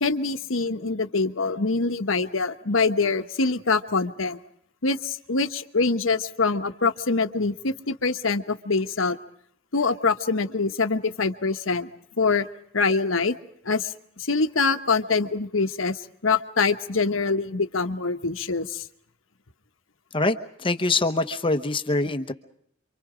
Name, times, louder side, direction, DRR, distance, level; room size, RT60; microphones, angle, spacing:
voice 1, 0.0-4.4 4.8-9.2 9.7-11.9 12.2-12.5 12.7-13.4 13.6-13.9 14.2-18.8, left 4 dB, 75° left, 8 dB, 1.3 m, -24 dB
voice 2, 20.1-22.3, left 2 dB, 25° left, 9 dB, 1.0 m, -24 dB
28.0 x 24.5 x 5.1 m, 0.69 s
head